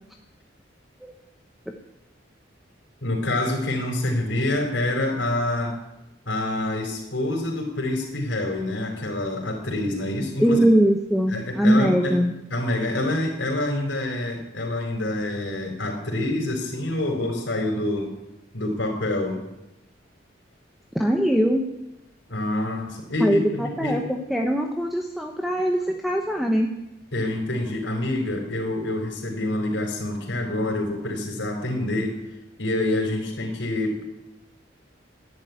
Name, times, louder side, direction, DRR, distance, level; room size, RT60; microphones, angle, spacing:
voice 1, 3.0-5.8 6.2-10.6 11.3-12.1 12.5-18.1 18.5-19.4 22.3-24.0 27.1-32.2 32.6-34.0, left 1 dB, 70° left, -2 dB, 4.2 m, -26 dB
voice 2, 10.4-12.3 20.9-21.6 23.2-26.7, equal, ahead, 2 dB, 0.9 m, -21 dB
14.0 x 11.0 x 9.6 m, 0.94 s
head